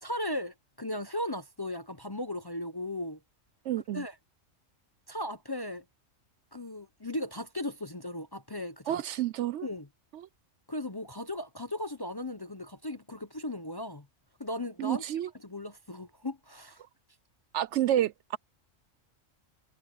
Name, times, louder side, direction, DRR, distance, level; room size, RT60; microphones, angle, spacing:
voice 1, 0.0-3.2 3.9-4.1 5.1-5.8 6.5-9.0 9.6-9.9 10.7-14.1 14.4-15.0 15.4-16.8, left 1 dB, 25° left, 0.6 m, -37 dB
voice 2, 3.6-4.0 8.9-9.7 10.1-10.3 14.8-15.3 17.5-18.4, right 12 dB, 70° right, 0.8 m, -29 dB
omnidirectional pair, 1.4 m